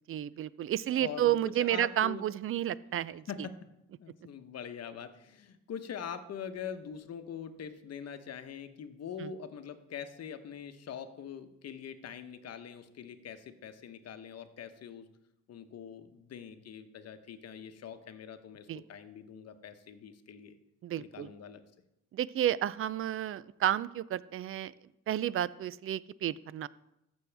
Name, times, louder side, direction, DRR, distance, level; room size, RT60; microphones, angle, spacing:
voice 1, 0.1-3.2 9.2-9.3 18.7-18.8 20.8-21.3 22.1-24.7 25.1-26.7, right 11 dB, 45° right, 19 dB, 0.4 m, -31 dB
voice 2, 0.9-2.2 3.3-3.7 4.0-15.1 15.5-20.6 21.0-21.6, left 7 dB, 55° left, 9 dB, 0.9 m, -43 dB
14.0 x 6.3 x 3.4 m, 0.84 s
cardioid pair, 90°, 30 cm